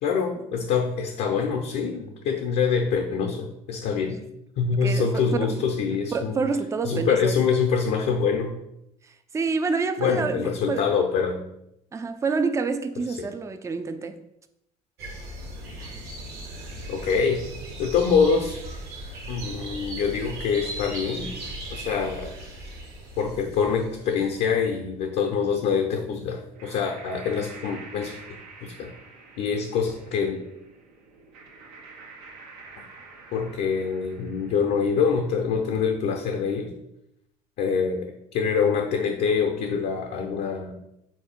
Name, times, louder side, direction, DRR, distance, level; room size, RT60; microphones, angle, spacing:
voice 1, 0.0-4.2 4.6-6.4 6.8-8.5 10.0-11.4 13.2-13.3 16.9-17.4 17.8-18.6 19.3-21.3 21.7-22.3 23.2-28.9 29.4-30.4 33.3-36.7 37.6-40.7, left 6 dB, 55° left, 0.5 m, -25 dB
voice 2, 4.8-5.6 6.1-7.4 9.0-10.9 11.9-14.2, right 4 dB, 15° right, 0.3 m, -28 dB
sound 1, 15.0-24.4, right 1 dB, 55° right, 1.1 m, -37 dB
sound 2, 26.5-35.4, right 4 dB, 75° right, 0.6 m, -47 dB
3.7 x 2.6 x 3.5 m
hypercardioid pair, 60°, 20 cm